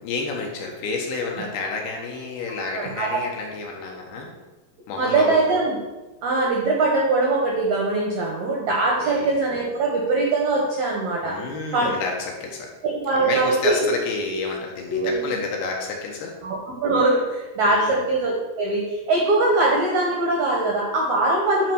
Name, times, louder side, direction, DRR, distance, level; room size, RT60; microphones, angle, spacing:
voice 1, 0.0-4.3 4.9-5.4 9.0-9.3 11.2-12.7 13.1-16.3 17.7-18.0, left 4 dB, 70° left, 0 dB, 2.8 m, -30 dB
voice 2, 2.8-3.2 5.0-5.8 6.2-11.4 11.7-11.9 12.8-13.9 14.9-15.3 16.4-21.7, right 2 dB, 75° right, -2 dB, 1.7 m, -22 dB
9.2 x 4.0 x 6.0 m, 1.1 s
omnidirectional pair, 5.1 m